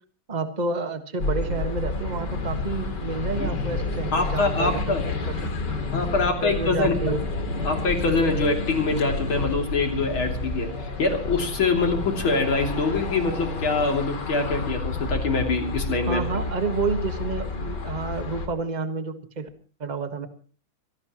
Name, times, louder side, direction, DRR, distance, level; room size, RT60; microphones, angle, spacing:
voice 1, 0.3-5.4 5.6-5.7 6.4-7.2 16.1-19.5 19.8-20.3, right 4 dB, 25° right, 7 dB, 1.5 m, -29 dB
sound 1, 1.2-18.5, left 3 dB, 55° left, 2.9 m, -30 dB
voice 2, 4.1-5.1 5.9-7.2 7.6-16.2, left 3 dB, 75° left, 3 dB, 3.8 m, -24 dB
24.5 x 17.5 x 3.1 m, 0.41 s
omnidirectional pair, 2.3 m